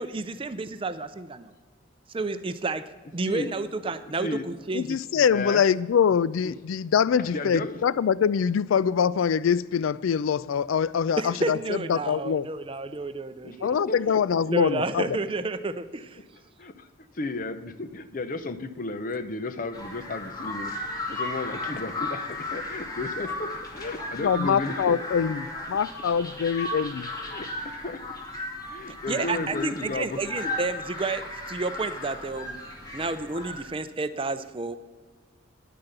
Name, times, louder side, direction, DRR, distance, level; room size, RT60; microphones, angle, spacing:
voice 1, 0.0-1.5 2.1-5.2 11.2-13.6 14.5-16.2 29.1-32.6 32.9-34.8, right 3 dB, 25° right, 0.5 m, -31 dB
voice 2, 3.2-3.6 3.9-4.5 5.3-5.6 6.4-6.5 7.2-7.9 13.4-14.2 16.6-16.9 17.1-20.8 21.1-25.0 27.2-28.2 28.6-30.5, left 2 dB, 45° left, 0.7 m, -34 dB
voice 3, 4.7-12.4 13.6-15.1 24.2-27.1 29.3-29.6, left 7 dB, 85° left, 0.4 m, -24 dB
sound 1, 19.7-33.6, left 2 dB, 20° left, 2.1 m, -35 dB
10.0 x 9.5 x 6.7 m
head